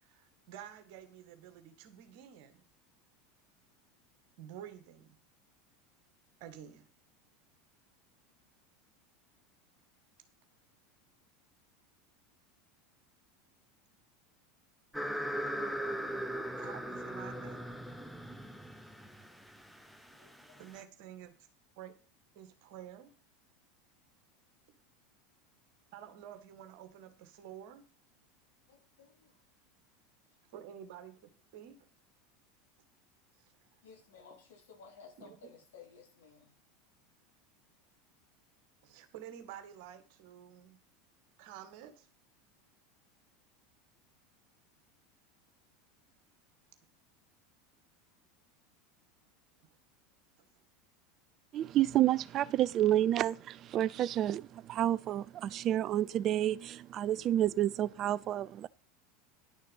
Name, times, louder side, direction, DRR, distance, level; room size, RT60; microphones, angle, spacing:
voice 1, 0.0-2.6 4.4-5.2 6.4-6.8 16.6-17.7 20.6-21.3 21.8-21.9 22.4-23.1 25.9-27.8 30.5-31.2 31.5-31.9 33.4-33.5 35.2-35.4 38.8-40.8 41.4-42.1, right 10 dB, 55° right, 1.8 m, -50 dB
sound 1, 14.9-20.8, equal, ahead, 1.0 m, -39 dB
voice 2, 20.1-20.7 28.7-29.4 33.8-36.6, left 5 dB, 65° left, 4.2 m, -56 dB
voice 3, 51.5-58.7, right 12 dB, 40° right, 0.4 m, -30 dB
11.0 x 6.6 x 5.6 m
figure-of-eight pair, 80°, 0 cm